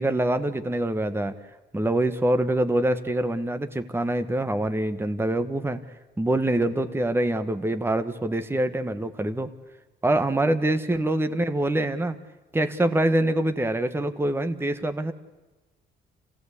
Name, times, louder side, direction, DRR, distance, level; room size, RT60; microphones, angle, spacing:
voice 1, 0.0-1.4 1.7-5.8 6.2-9.5 10.0-12.2 12.5-15.1, right 1 dB, 10° right, 9 dB, 1.2 m, -25 dB
26.5 x 16.5 x 8.3 m, 1.2 s
cardioid pair, 90°, 20 cm